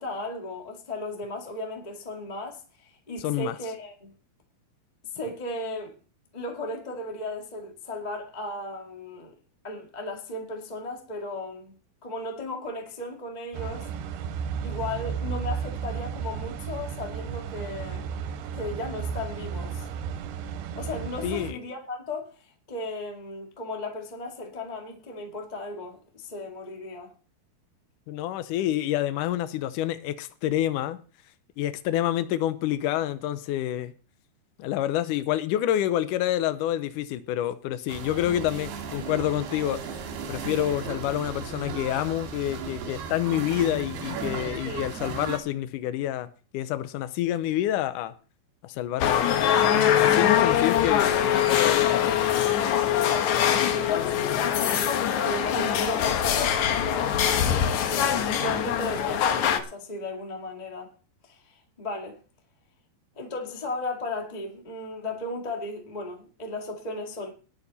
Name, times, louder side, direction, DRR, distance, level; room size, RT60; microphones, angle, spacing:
voice 1, 0.0-4.1 5.1-5.9 6.3-9.3 9.6-11.8 12.0-13.9 14.6-18.1 18.5-19.9 20.7-27.1 38.5-38.6 44.6-44.9 52.9-60.9 61.2-62.2 63.1-67.3, left 2 dB, 20° left, 1.1 m, -36 dB
voice 2, 3.2-3.6 21.2-21.6 28.1-31.0 31.6-33.9 34.6-39.8 40.3-46.3 46.5-48.1 48.6-49.3 50.0-52.2, left 12 dB, 85° left, 1.8 m, -28 dB
sound 1, 13.5-21.5, right 7 dB, 90° right, 3.1 m, -33 dB
sound 2, 37.9-45.4, right 6 dB, 75° right, 3.9 m, -36 dB
sound 3, 49.0-59.6, left 9 dB, 70° left, 1.8 m, -23 dB
19.5 x 7.1 x 4.2 m
omnidirectional pair, 4.7 m